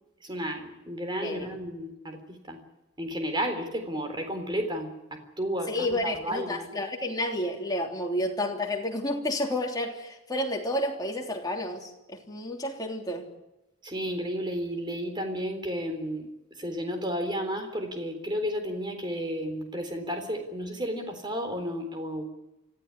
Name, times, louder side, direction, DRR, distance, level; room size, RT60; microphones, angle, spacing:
voice 1, 0.2-2.6 3.0-6.7 13.8-16.3 16.6-22.3, equal, 20° right, 6 dB, 3.8 m, -32 dB
voice 2, 5.7-13.3, left 1 dB, 20° left, 1 dB, 3.2 m, -30 dB
25.5 x 15.5 x 9.7 m, 0.97 s
head